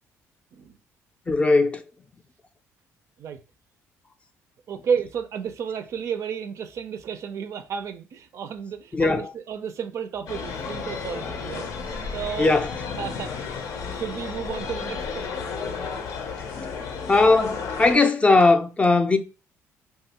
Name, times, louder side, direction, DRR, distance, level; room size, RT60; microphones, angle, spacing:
voice 1, 1.3-1.8 8.9-9.3 12.4-12.7 17.1-19.2, left 3 dB, 20° left, 0.4 m, -19 dB
voice 2, 4.7-12.5 13.0-13.5 13.9-15.5, right 7 dB, 60° right, 0.4 m, -32 dB
sound 1, 10.3-17.9, left 5 dB, 70° left, 0.5 m, -33 dB
3.1 x 2.3 x 2.8 m
cardioid pair, 90°, 6 cm